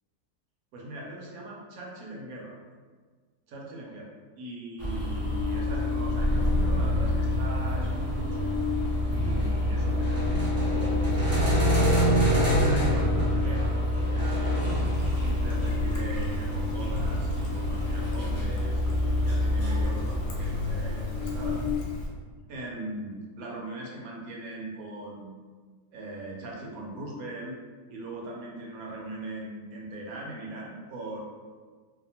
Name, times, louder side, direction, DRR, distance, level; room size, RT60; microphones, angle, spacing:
voice 1, 0.7-2.5 3.5-4.0 4.4-8.5 9.1-11.8 12.5-14.7 15.2-21.6 22.5-25.3 25.9-27.6 27.9-31.2, right 1 dB, 75° right, -2 dB, 1.1 m, -40 dB
sound 1, 4.8-21.8, left 1 dB, 20° right, 0.4 m, -26 dB
Trickle dribble, 14.9-22.1, equal, 70° left, 1.0 m, -38 dB
2.7 x 2.3 x 2.8 m, 1.5 s
omnidirectional pair, 1.6 m